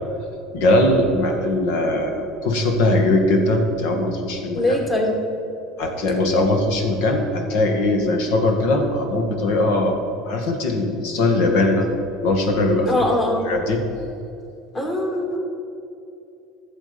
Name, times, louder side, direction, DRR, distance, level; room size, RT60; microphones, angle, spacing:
voice 1, 0.5-4.8 5.8-11.9 12.2-13.0 13.4-13.8, left 2 dB, 75° left, 4 dB, 1.7 m, -20 dB
voice 2, 4.5-5.2 12.8-13.5 14.7-15.4, left 1 dB, 25° left, 0 dB, 2.7 m, -21 dB
12.0 x 7.6 x 5.2 m, 2.7 s
supercardioid pair, 105°, 0 cm